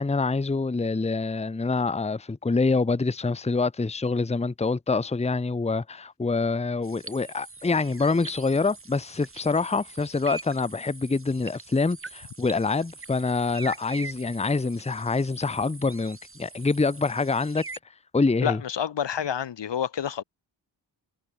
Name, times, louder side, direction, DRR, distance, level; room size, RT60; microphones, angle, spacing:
voice 1, 0.0-17.6 18.1-18.6, left 3 dB, 15° left, 0.7 m, -26 dB
sound 1, 6.8-17.8, right 3 dB, 30° right, 2.5 m, -43 dB
voice 2, 18.4-20.2, left 8 dB, 70° left, 1.1 m, -28 dB
wide cardioid pair, 135°, 44 cm